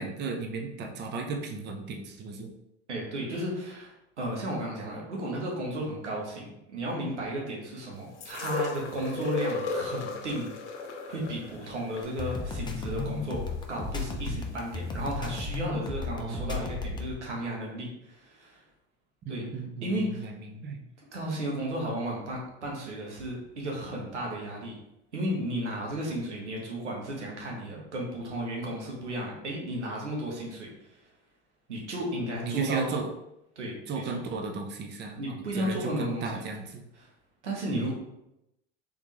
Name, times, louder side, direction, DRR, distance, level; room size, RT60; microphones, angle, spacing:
voice 1, 0.0-2.5 16.2-16.7 19.2-20.8 32.4-33.1 33.9-36.8 37.7-37.9, right 4 dB, 30° right, 3 dB, 0.7 m, -35 dB
voice 2, 2.9-10.5 11.1-13.4 13.7-18.6 19.3-19.5 19.8-20.3 21.1-24.8 25.1-31.0 31.7-32.9 33.6-33.8 35.2-36.4 37.0-37.1 37.4-37.9, right 1 dB, 90° right, -2 dB, 1.2 m, -34 dB
sound 1, 8.2-14.2 15.1-15.2, left 4 dB, 75° left, 0.7 m, -36 dB
sound 2, 12.0-17.1, left 4 dB, 15° left, 0.6 m, -34 dB
3.5 x 3.5 x 3.0 m, 0.86 s
hypercardioid pair, 75°, 34 cm